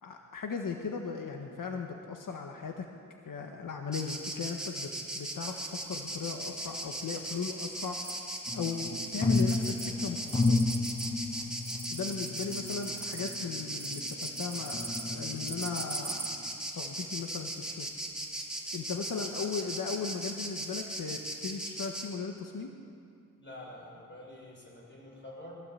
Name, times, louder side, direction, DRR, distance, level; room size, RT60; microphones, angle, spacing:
voice 1, 0.0-2.9 3.2-5.6 5.9-8.0 8.5-10.6 11.9-16.3 16.7-17.9 18.7-22.7, left 5 dB, 90° left, 3 dB, 1.5 m, -37 dB
Insect, 3.9-22.1, right 1 dB, ahead, 3.2 m, -38 dB
sound 1, 8.0-9.9 10.2-16.3, right 4 dB, 35° right, 1.2 m, -44 dB
sound 2, 8.5-14.2 14.7-15.8 16.3-16.5, left 3 dB, 20° left, 0.9 m, -32 dB
voice 2, 23.4-25.6, left 1 dB, 35° left, -2 dB, 7.1 m, -47 dB
22.0 x 15.0 x 8.4 m, 2.5 s
wide cardioid pair, 115°, 32 cm